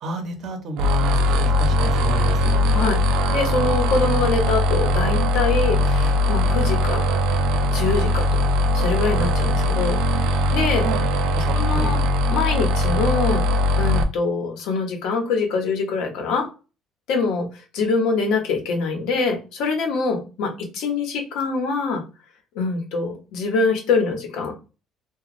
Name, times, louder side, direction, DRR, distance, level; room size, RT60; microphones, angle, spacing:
voice 1, 0.0-2.8 10.8-11.0 11.3-12.0, right 4 dB, 60° right, 5 dB, 0.7 m, -31 dB
sound 1, 0.8-14.0, left 1 dB, 80° right, 0.4 m, -20 dB
voice 2, 3.3-7.1 7.7-8.5 8.7-10.0 10.5-10.8 11.5-12.0 12.3-13.4 13.8-16.5 17.1-17.5 17.7-22.0 22.5-24.5, left 4 dB, 80° left, 3 dB, 0.8 m, -24 dB
3.0 x 2.2 x 2.5 m, 0.32 s
cardioid pair, 125°, 0 cm